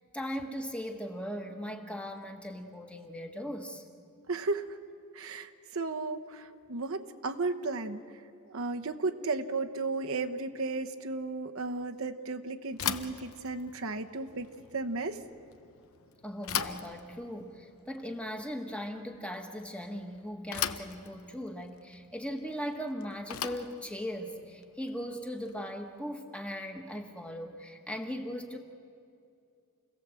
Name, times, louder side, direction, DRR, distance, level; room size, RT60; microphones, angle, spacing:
voice 1, 0.1-3.8 16.2-28.6, equal, 5° left, 3 dB, 1.5 m, -39 dB
voice 2, 4.3-4.8 5.1-15.2, right 3 dB, 65° right, 5 dB, 1.0 m, -34 dB
Bicycle / Thump thud, 12.7-25.8, left 9 dB, 70° left, 0.8 m, -40 dB
29.0 x 18.0 x 7.7 m, 2.5 s
head